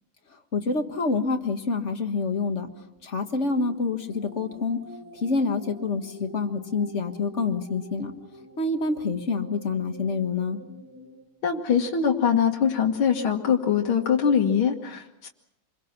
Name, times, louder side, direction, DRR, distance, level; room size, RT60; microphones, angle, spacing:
voice 1, 0.5-2.7 3.0-4.8 5.1-8.1 8.6-10.6, left 4 dB, 35° left, 5 dB, 1.8 m, -27 dB
sound 1, 2.5-11.2, equal, 5° right, 4.5 m, -46 dB
voice 2, 11.4-15.3, left 7 dB, 90° left, 1 dB, 2.3 m, -23 dB
28.0 x 22.5 x 5.9 m, 0.84 s
omnidirectional pair, 2.2 m